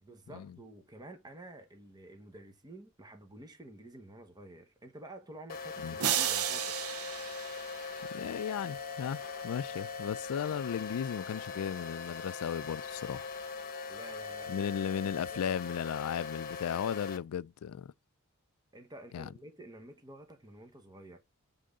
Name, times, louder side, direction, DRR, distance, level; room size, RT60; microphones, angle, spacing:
voice 1, 0.0-6.9 13.9-14.6 15.3-15.4 18.7-21.2, right 1 dB, 20° right, 1.0 m, -50 dB
sound 1, 5.5-17.2, left 5 dB, 40° left, 1.0 m, -41 dB
sound 2, 6.0-8.3, right 10 dB, 75° right, 0.6 m, -33 dB
voice 2, 8.1-13.3 14.5-17.9 19.1-19.3, left 8 dB, 70° left, 0.3 m, -36 dB
7.7 x 3.7 x 5.0 m
head